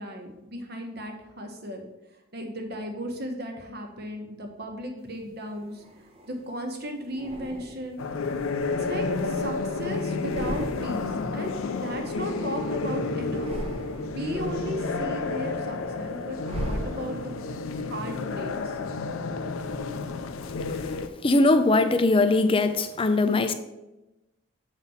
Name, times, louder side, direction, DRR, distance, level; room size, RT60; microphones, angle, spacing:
voice 1, 0.0-1.8 2.3-5.8 6.3-8.0 8.8-11.5 11.8-13.5 14.1-18.8, equal, 50° right, 4 dB, 1.1 m, -36 dB
sound 1, 5.2-6.4 7.1-8.1 8.5-9.8 10.1-11.2 11.5-12.8 13.2-14.3 14.7-17.5, equal, 25° right, 0.8 m, -39 dB
sound 2, 8.0-21.1, left 3 dB, 75° left, 0.5 m, -31 dB
voice 2, 21.2-23.5, left 2 dB, 25° left, 10 dB, 0.4 m, -21 dB
7.0 x 4.2 x 5.6 m, 0.99 s
head